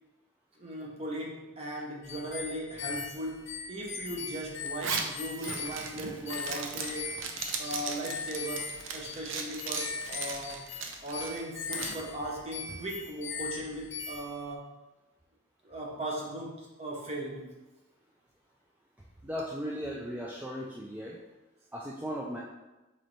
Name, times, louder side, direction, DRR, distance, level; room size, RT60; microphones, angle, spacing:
voice 1, 0.6-10.7 11.0-14.7 15.6-17.5, right 1 dB, 30° right, -1 dB, 0.8 m, -38 dB
sound 1, 2.0-14.5, left 5 dB, 55° left, 0.4 m, -40 dB
Zipper (clothing), 4.7-12.0, right 5 dB, 65° right, 0.5 m, -37 dB
voice 2, 19.2-21.2 21.7-22.4, equal, 10° right, -4 dB, 0.3 m, -37 dB
4.2 x 3.2 x 3.9 m, 1.1 s
head